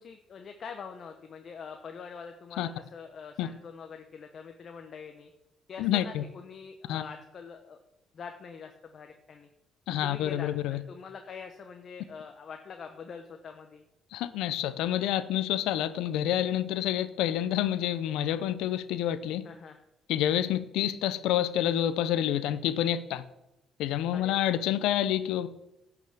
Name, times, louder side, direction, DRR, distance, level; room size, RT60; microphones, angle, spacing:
voice 1, 0.0-5.3 5.7-7.8 8.1-9.5 10.0-13.8 19.4-19.8 24.1-24.6, left 6 dB, 50° left, 1.0 m, -44 dB
voice 2, 5.8-6.2 6.9-7.0 9.9-10.8 14.1-19.5 20.1-23.2 23.8-25.5, left 11 dB, 80° left, 0.7 m, -28 dB
10.5 x 6.1 x 6.8 m
supercardioid pair, 70°, 0 cm